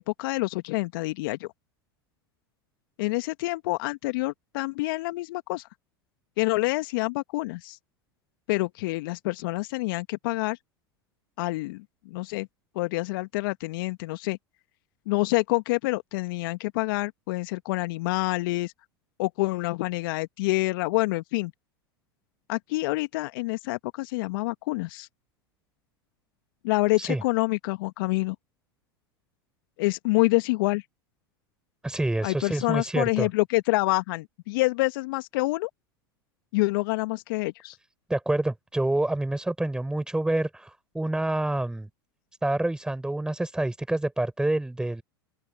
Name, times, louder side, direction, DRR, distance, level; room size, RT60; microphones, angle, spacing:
voice 1, 0.0-1.5 3.0-5.7 6.4-7.8 8.5-10.6 11.4-12.5 12.7-14.4 15.1-18.7 19.2-21.5 22.5-25.1 26.6-28.3 29.8-30.8 32.2-35.7 36.5-37.8, left 22 dB, 60° left, 1.6 m, -27 dB
voice 2, 31.8-33.3 38.1-41.9 42.4-45.0, right 1 dB, 5° right, 4.6 m, -27 dB
open air
hypercardioid pair, 90°, 13 cm